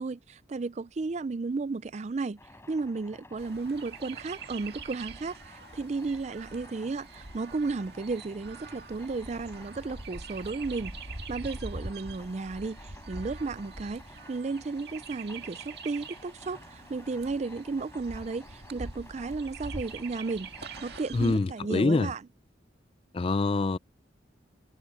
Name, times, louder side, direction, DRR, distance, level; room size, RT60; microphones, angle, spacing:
voice 1, 0.0-2.4 2.7-10.9 11.3-20.5 20.8-22.2, right 3 dB, 40° right, 0.4 m, -34 dB
sound 1, 2.4-21.1, left 2 dB, 15° left, 4.0 m, -53 dB
Chirp tweet, 3.4-21.4, right 3 dB, 60° right, 2.1 m, -44 dB
voice 2, 21.1-22.1 23.1-23.8, left 3 dB, 30° left, 0.4 m, -25 dB
head